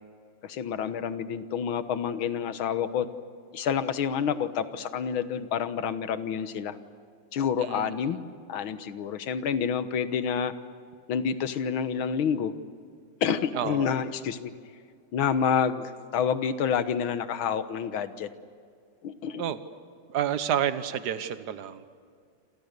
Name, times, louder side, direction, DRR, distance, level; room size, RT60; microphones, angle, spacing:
voice 1, 0.4-3.1 3.5-6.8 7.3-8.2 8.5-10.5 11.1-12.5 13.2-14.5 15.1-18.3 19.0-19.4, left 7 dB, 70° left, 11 dB, 1.9 m, -28 dB
voice 2, 7.6-7.9 13.5-13.9 19.4-19.6 20.1-21.9, right 9 dB, 55° right, 12 dB, 1.5 m, -29 dB
28.0 x 27.5 x 6.7 m, 2.2 s
omnidirectional pair, 2.4 m